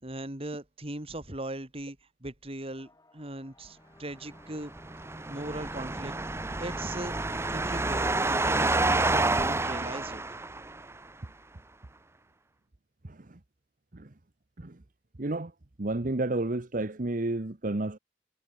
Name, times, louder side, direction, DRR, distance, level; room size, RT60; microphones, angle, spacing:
voice 1, 0.0-4.7 5.3-6.1 6.6-7.2 7.5-10.2, right 1 dB, 35° right, 3.8 m, -39 dB
sound 1, 2.7-9.4, left 2 dB, 20° left, 6.4 m, -59 dB
sound 2, 4.6-10.9, right 2 dB, 15° right, 0.8 m, -29 dB
voice 2, 15.2-15.5 15.8-18.0, right 2 dB, 50° right, 1.1 m, -30 dB
head